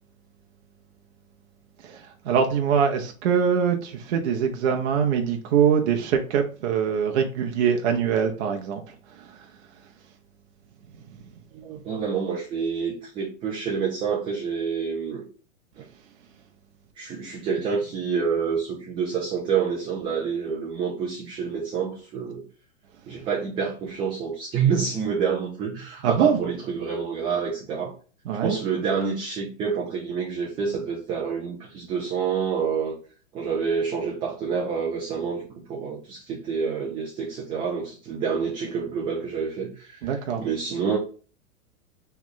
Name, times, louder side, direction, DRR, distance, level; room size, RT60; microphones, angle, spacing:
voice 1, 1.8-9.5 26.0-26.4 28.2-28.6 40.0-40.5, right 7 dB, 55° right, 0.7 m, -23 dB
voice 2, 11.5-15.2 15.8-15.9 17.0-22.4 23.1-27.9 28.4-32.9 33.3-41.0, right 6 dB, 15° right, 0.4 m, -28 dB
3.2 x 2.3 x 3.7 m
hypercardioid pair, 110°, 40 cm